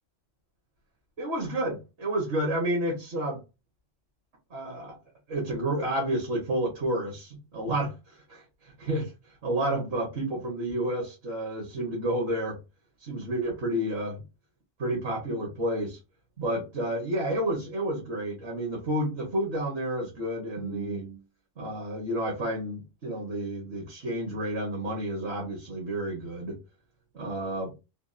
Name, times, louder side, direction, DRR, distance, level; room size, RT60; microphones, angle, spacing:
voice 1, 1.2-3.4 4.5-5.0 5.3-9.1 9.4-12.6 13.0-14.2 14.8-16.0 16.4-21.2 21.6-26.6 27.1-27.7, right 1 dB, 60° right, 1.4 m, -30 dB
3.4 x 2.3 x 2.5 m
omnidirectional pair, 1.3 m